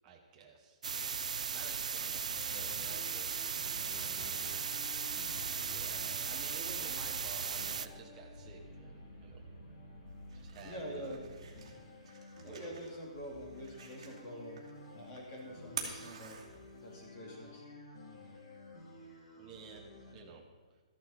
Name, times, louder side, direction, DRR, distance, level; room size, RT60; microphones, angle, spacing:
voice 1, 0.0-0.8 1.5-3.4 3.9-4.5 5.7-9.4 10.3-11.2 12.4-12.7 19.4-20.5, right 5 dB, 15° right, -1 dB, 1.0 m, -52 dB
sound 1, 0.8-7.9, right 6 dB, 85° right, 0.5 m, -37 dB
sound 2, 2.2-20.1, left 1 dB, 50° left, 3.2 m, -52 dB
sound 3, 10.1-17.0, right 6 dB, 50° right, 2.5 m, -49 dB
voice 2, 10.6-11.4 12.4-14.6 14.9-16.4 16.8-17.6, equal, 20° left, -1 dB, 2.3 m, -45 dB
13.5 x 11.0 x 4.2 m, 1.3 s
hypercardioid pair, 175°, 4 cm